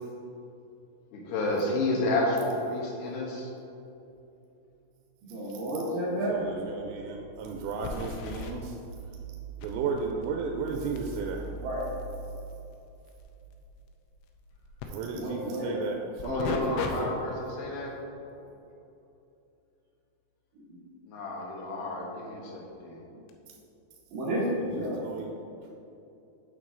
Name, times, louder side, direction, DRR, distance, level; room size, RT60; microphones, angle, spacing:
voice 1, 1.1-3.5 16.2-17.9 21.0-23.0, left 2 dB, 70° left, -3 dB, 2.9 m, -30 dB
voice 2, 5.3-6.3 11.6-11.8 15.1-15.8 20.6-20.8 24.1-25.0, right 1 dB, 70° right, -8 dB, 2.1 m, -31 dB
sound 1, 6.0-6.1 6.4-6.5 7.8-8.5 9.6-14.9 16.2-16.9 17.4-17.6 22.3-22.4 23.3-23.4, left 5 dB, 90° left, 3.1 m, -40 dB
voice 3, 6.3-8.8 9.6-11.5 14.9-17.3 24.6-25.3, right 4 dB, 85° right, 1 dB, 3.1 m, -34 dB
8.6 x 6.0 x 3.8 m, 2.8 s
omnidirectional pair, 5.6 m